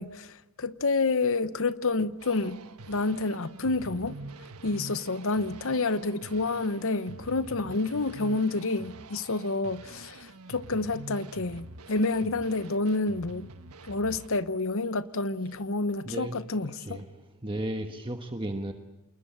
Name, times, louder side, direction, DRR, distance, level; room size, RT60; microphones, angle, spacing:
voice 1, 0.0-2.6 2.9-4.2 4.6-13.5 13.9-17.0, left 3 dB, 65° left, 1.0 m, -29 dB
sound 1, 2.2-14.3, right 2 dB, 80° right, 1.4 m, -46 dB
voice 2, 16.0-16.4 16.7-18.7, right 1 dB, 25° right, 1.3 m, -35 dB
28.0 x 21.0 x 8.9 m
head